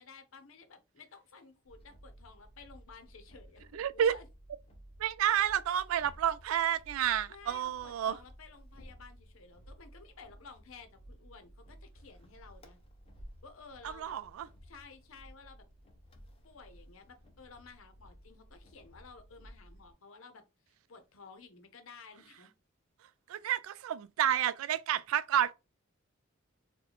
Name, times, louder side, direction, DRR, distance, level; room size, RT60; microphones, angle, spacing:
voice 1, 0.0-4.3 7.3-12.8 13.4-14.1 14.6-15.6 16.4-20.4 20.9-22.5, left 4 dB, 80° left, 0.7 m, -54 dB
sound 1, 1.6-19.9, equal, 30° left, 0.5 m, -55 dB
voice 2, 3.7-4.2 5.0-8.2 13.8-14.5 23.3-25.5, right 10 dB, 85° right, 0.3 m, -30 dB
3.9 x 2.2 x 2.9 m
head